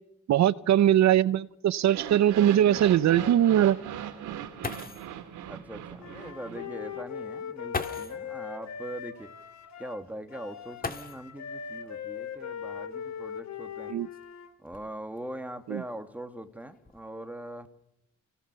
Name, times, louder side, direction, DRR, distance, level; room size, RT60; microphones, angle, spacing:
voice 1, 0.3-3.8 13.9-14.1 15.7-15.8, right 11 dB, 65° right, 18 dB, 0.8 m, -21 dB
sound 1, 1.8-7.0, right 10 dB, 80° right, 2.7 m, -39 dB
sound 2, 4.3-4.4 4.6-5.2 6.5-6.6 7.7-8.3 10.8-11.5 12.9-13.0 13.7-15.2 15.9-16.2 16.6-17.0, left 4 dB, 30° left, 2.3 m, -38 dB
voice 2, 5.5-9.3 9.8-13.9 14.6-17.7, right 1 dB, 5° right, 7 dB, 2.5 m, -41 dB
Wind instrument woodwind instrument, 6.0-14.5, left 7 dB, 65° left, 2.7 m, -40 dB
29.5 x 18.0 x 7.0 m, 0.80 s
cardioid pair, 90°, 30 cm